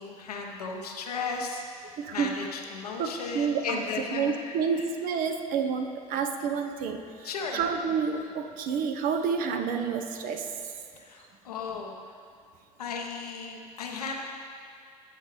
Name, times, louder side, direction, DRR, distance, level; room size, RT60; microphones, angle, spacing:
voice 1, 0.0-4.8 7.2-7.6 11.0-12.2 12.8-14.2, left 5 dB, 80° left, 1 dB, 1.1 m, -35 dB
voice 2, 2.0-2.3 3.0-3.8 4.1-10.5, right 6 dB, 45° right, 5 dB, 0.9 m, -29 dB
15.5 x 6.6 x 3.2 m, 2.2 s
figure-of-eight pair, 70°, 20 cm